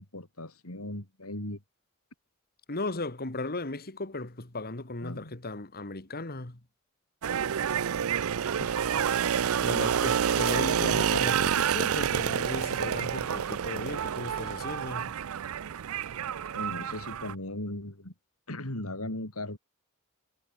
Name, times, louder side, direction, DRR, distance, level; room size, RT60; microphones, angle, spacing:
voice 1, 0.0-1.6 5.0-5.4 8.6-8.7 16.5-18.1 18.5-19.6, left 1 dB, 90° left, 4.6 m, -38 dB
voice 2, 2.7-6.6 9.6-15.1, left 2 dB, 45° left, 2.1 m, -36 dB
sound 1, 7.2-17.3, right 8 dB, 75° right, 0.5 m, -28 dB
head